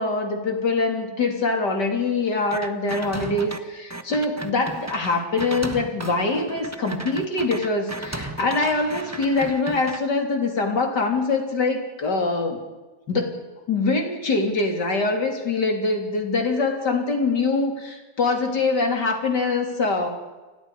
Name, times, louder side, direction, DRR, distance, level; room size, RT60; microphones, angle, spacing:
voice 1, 0.0-12.6 13.1-13.4 13.7-20.1, left 3 dB, 65° left, 3 dB, 3.8 m, -24 dB
sound 1, 2.5-3.6 3.9-10.0, right 1 dB, 10° right, 0.9 m, -35 dB
29.0 x 20.5 x 5.0 m, 1.2 s
omnidirectional pair, 2.0 m